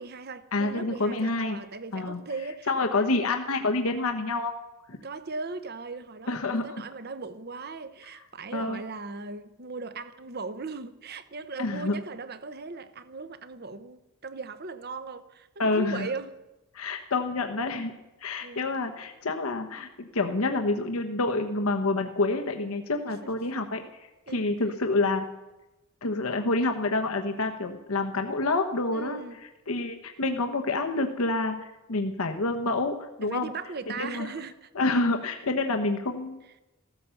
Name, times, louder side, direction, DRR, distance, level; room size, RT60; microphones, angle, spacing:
voice 1, 0.0-3.1 5.0-16.3 18.4-18.7 23.1-23.3 24.3-24.5 28.9-29.4 33.2-34.7, right 4 dB, 45° right, 0.8 m, -38 dB
voice 2, 0.5-1.6 1.9-2.2 2.7-4.5 4.9-5.0 6.3-6.7 8.5-8.8 11.6-12.0 15.6-16.1 16.7-25.2 26.0-29.2 29.7-31.6 31.9-33.5 34.0-34.3 34.7-36.4, left 2 dB, 80° left, 1.1 m, -28 dB
15.0 x 13.5 x 7.1 m
head